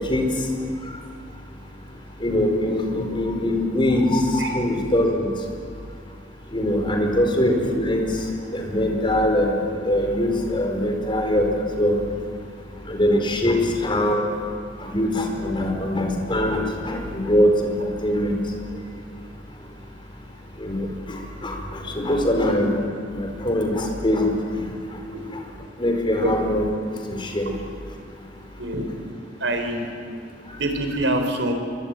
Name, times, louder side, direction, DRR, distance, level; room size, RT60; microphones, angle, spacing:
voice 1, 2.2-5.3 6.5-8.1 8.5-11.5 11.8-11.9 12.9-14.2 14.8-17.8 18.0-18.4 20.6-20.9 21.4-22.7 23.1-24.6 25.8-26.6 27.1-27.5, left 1 dB, 30° left, 2 dB, 4.5 m, -22 dB
voice 2, 28.6-28.9 29.4-29.9 30.6-31.5, right 1 dB, 90° right, 5 dB, 4.6 m, -25 dB
27.0 x 24.0 x 9.2 m, 2.3 s
head